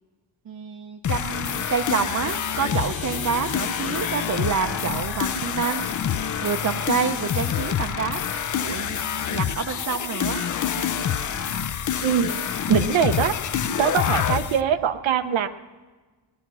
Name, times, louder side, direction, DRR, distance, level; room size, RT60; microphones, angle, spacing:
voice 1, 0.5-5.9 6.4-8.2 8.6-9.0 9.3-10.4, right 6 dB, 40° right, 4 dB, 0.6 m, -27 dB
sound 1, 1.0-14.6, left 8 dB, 45° left, 0.5 m, -27 dB
sound 2, 2.2-11.7, left 6 dB, 85° left, 1.3 m, -41 dB
voice 2, 12.0-12.4 12.7-13.3 13.8-15.5, right 8 dB, 85° right, 8 dB, 0.9 m, -22 dB
19.5 x 11.0 x 6.1 m, 1.3 s
wide cardioid pair, 175°, 45 cm